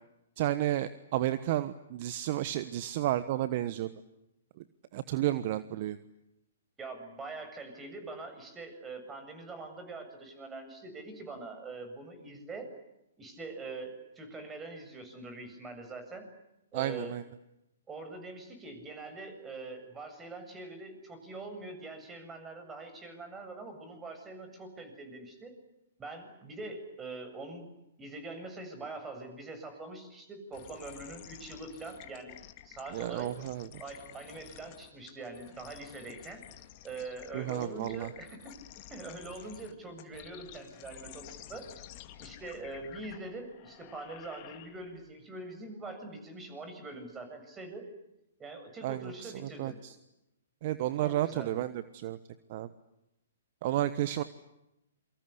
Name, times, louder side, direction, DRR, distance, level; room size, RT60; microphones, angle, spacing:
voice 1, 0.4-3.9 4.6-4.7 4.9-6.0 16.7-17.2 32.9-33.7 37.3-38.1 48.8-49.3 49.6-49.9 50.6-52.2 52.5-52.7 53.6-54.2, right 13 dB, 45° right, 13 dB, 1.2 m, -32 dB
voice 2, 6.8-12.7 13.2-16.3 16.7-17.2 17.9-25.5 26.0-27.7 28.0-32.4 32.6-33.3 33.8-36.4 36.8-38.5 38.9-41.7 42.2-47.9 48.4-49.8 51.0-51.6, right 2 dB, 15° right, 8 dB, 7.4 m, -43 dB
sound 1, 30.5-45.1, left 14 dB, 35° left, 2.3 m, -51 dB
28.0 x 24.5 x 8.2 m, 0.88 s
figure-of-eight pair, 125°, 0 cm